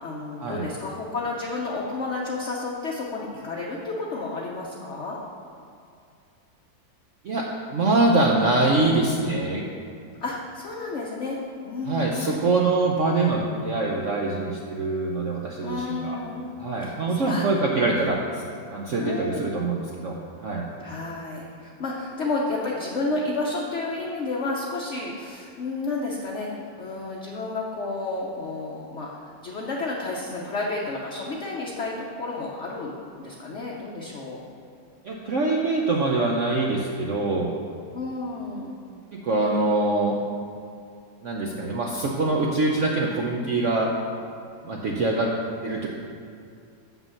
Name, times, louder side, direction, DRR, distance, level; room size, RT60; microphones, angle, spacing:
voice 1, 0.0-5.2 10.2-11.4 11.6-12.4 15.6-16.4 16.8-17.4 19.0-19.5 20.8-26.5 26.8-29.1 29.4-34.4 37.9-38.8, left 3 dB, 50° left, -3 dB, 0.9 m, -31 dB
voice 2, 7.2-9.6 11.9-16.2 16.6-18.5 18.7-20.7 35.0-37.5 39.1-40.2 41.2-43.9 44.6-45.3 45.6-45.9, right 2 dB, 65° right, -1 dB, 0.8 m, -24 dB
7.0 x 6.0 x 6.9 m, 2.4 s
omnidirectional pair, 2.1 m